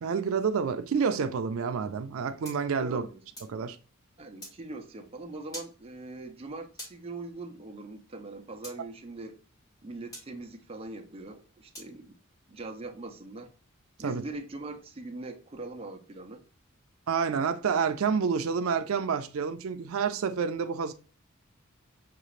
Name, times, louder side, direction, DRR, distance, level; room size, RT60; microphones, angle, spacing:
voice 1, 0.0-3.1 3.5-3.8 14.0-14.2 17.1-20.9, right 6 dB, 80° right, 0.4 m, -28 dB
sound 1, 2.4-3.6 4.4-4.6 5.5-5.7 6.8-7.0 8.6-8.8 10.1-10.3 11.7-11.9, equal, 15° left, 1.3 m, -43 dB
voice 2, 2.8-3.2 4.2-9.3 9.8-12.2 12.5-13.5 14.0-16.4, right 2 dB, 30° right, 0.6 m, -41 dB
5.9 x 2.4 x 3.1 m
head